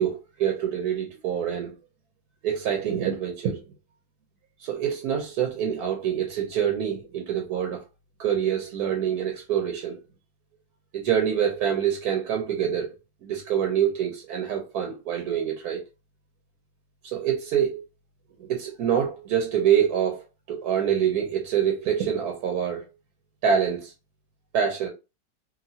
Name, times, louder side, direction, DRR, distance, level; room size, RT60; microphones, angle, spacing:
voice 1, 0.0-1.7 2.4-3.6 4.6-7.8 8.2-10.0 10.9-12.9 13.2-15.8 17.0-17.8 18.4-20.2 20.5-22.8 23.4-23.9 24.5-24.9, right 9 dB, 70° right, 1.0 m, -25 dB
2.9 x 2.7 x 2.6 m
omnidirectional pair, 2.0 m